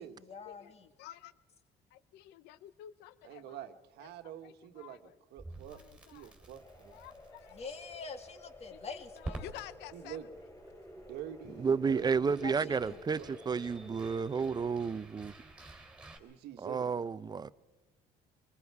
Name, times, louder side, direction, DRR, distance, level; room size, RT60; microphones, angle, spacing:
voice 1, 0.0-0.9 7.5-9.4 12.4-13.0, left 4 dB, 40° left, 2.2 m, -45 dB
voice 2, 1.0-1.3 1.9-3.7 4.0-4.1 4.4-5.2 5.7-6.3 6.9-7.7 8.7-10.2, left 13 dB, 90° left, 0.6 m, -51 dB
voice 3, 3.2-5.0 5.3-5.8 6.1-7.0 9.9-10.3 11.1-12.8 13.2-13.3 16.2-16.9, right 11 dB, 80° right, 1.4 m, -46 dB
Crackle, 5.4-16.2, right 2 dB, 5° right, 3.5 m, -51 dB
sound 1, 6.5-14.7, left 1 dB, 15° left, 3.9 m, -52 dB
voice 4, 11.6-15.3 16.6-17.5, right 5 dB, 25° right, 0.6 m, -31 dB
25.5 x 21.5 x 4.8 m
cardioid pair, 110°, 17 cm